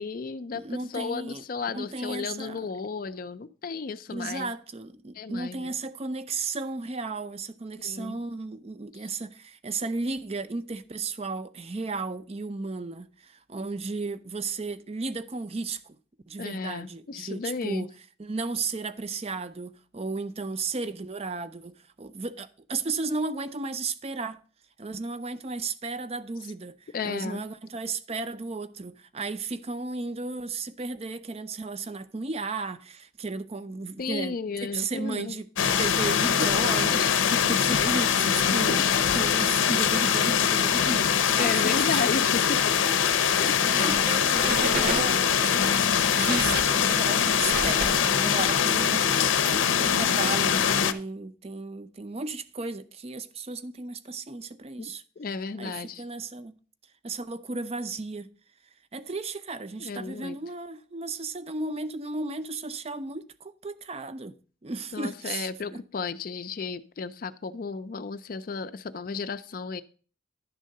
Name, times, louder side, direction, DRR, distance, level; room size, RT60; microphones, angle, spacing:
voice 1, 0.0-4.5 5.1-5.7 7.8-8.2 16.4-17.9 26.9-27.4 34.0-35.4 36.9-37.8 38.6-38.8 41.4-42.6 43.4-44.0 44.5-45.2 54.8-56.0 59.8-60.4 64.9-69.8, left 4 dB, 50° left, 0.4 m, -33 dB
voice 2, 0.5-2.7 4.1-16.0 16.3-17.9 18.2-24.4 24.8-26.8 27.0-38.8 39.1-42.0 43.6-45.7 46.1-55.0 55.6-56.6 57.0-58.3 58.9-64.3 64.6-65.8, right 3 dB, 30° right, 0.5 m, -34 dB
sound 1, 35.6-50.9, left 8 dB, 90° left, 0.6 m, -23 dB
sound 2, 43.7-44.1 44.3-45.3 45.8-48.5, right 3 dB, 50° right, 1.0 m, -33 dB
11.0 x 3.7 x 6.4 m
head